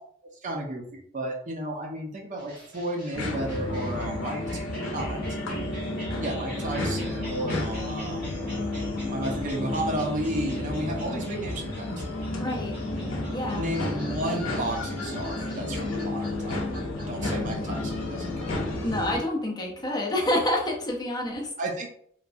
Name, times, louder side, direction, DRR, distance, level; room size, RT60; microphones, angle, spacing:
voice 1, 0.4-4.6 4.9-5.4 6.2-8.3 9.1-12.0 13.5-16.6 17.1-18.6 21.6-21.9, right 1 dB, 40° right, 1 dB, 0.5 m, -33 dB
sound 1, 2.4-19.2, equal, 10° right, 1.3 m, -45 dB
sound 2, 3.1-19.2, left 2 dB, 90° left, 0.6 m, -31 dB
voice 2, 12.4-12.7 13.3-13.7 18.8-21.5, left 1 dB, 20° left, -1 dB, 0.5 m, -28 dB
3.0 x 2.2 x 2.5 m, 0.64 s
head